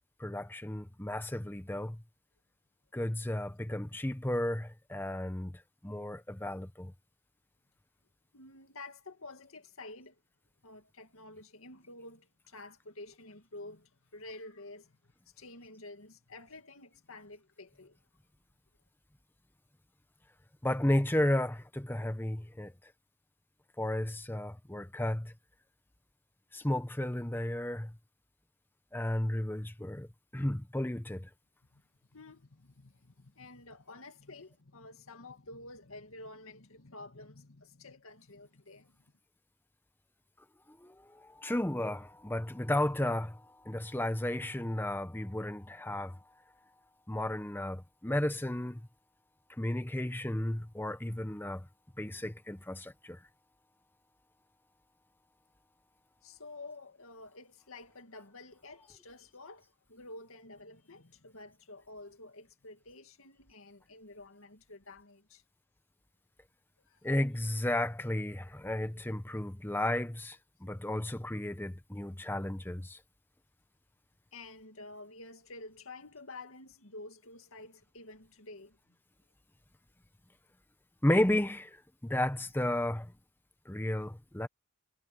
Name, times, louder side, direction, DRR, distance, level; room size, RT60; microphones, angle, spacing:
voice 1, 0.2-2.0 2.9-5.5 5.8-6.9 20.6-22.7 23.8-25.3 26.5-27.9 28.9-30.1 30.3-31.3 40.8-46.2 47.1-48.8 49.6-51.7 52.0-53.2 67.0-73.0 81.0-83.1 83.7-84.5, left 1 dB, 10° left, 0.8 m, -33 dB
voice 2, 8.3-10.2 10.6-15.0 15.4-18.0 31.7-31.8 32.1-39.0 56.2-65.4 66.9-67.0 74.3-78.8, left 2 dB, 80° left, 2.2 m, -50 dB
head